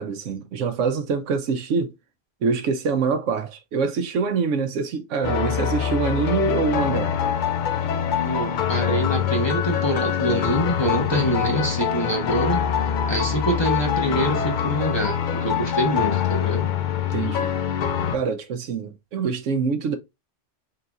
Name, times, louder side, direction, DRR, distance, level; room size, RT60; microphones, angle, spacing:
voice 1, 0.0-1.9 2.4-7.1 17.1-17.5 18.1-20.0, right 5 dB, 80° right, 1.0 m, -25 dB
sound 1, 5.2-18.2, left 8 dB, 60° left, 0.5 m, -24 dB
voice 2, 8.2-12.6 13.1-16.7, equal, 25° left, 0.8 m, -25 dB
3.9 x 3.8 x 2.3 m
omnidirectional pair, 1.3 m